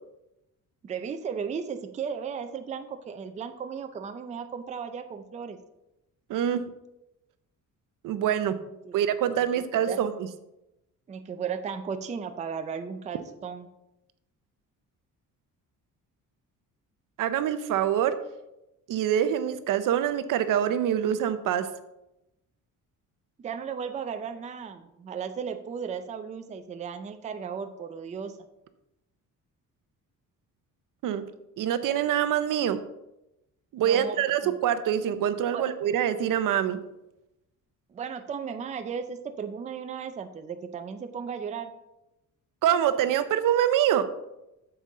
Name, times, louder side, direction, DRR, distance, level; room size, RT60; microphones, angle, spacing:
voice 1, 0.8-5.6 8.9-9.0 9.8-10.0 11.1-13.7 23.4-28.3 33.8-34.2 34.4-34.5 35.5-35.7 37.9-41.7, right 6 dB, 20° right, 8 dB, 0.4 m, -35 dB
voice 2, 6.3-6.6 8.0-8.6 8.9-10.1 17.2-18.2 18.9-21.7 31.0-31.2 31.6-32.8 33.7-36.8 42.6-44.1, right 10 dB, 70° right, 11 dB, 0.7 m, -25 dB
8.2 x 7.0 x 3.7 m, 0.90 s
cardioid pair, 165°, 33 cm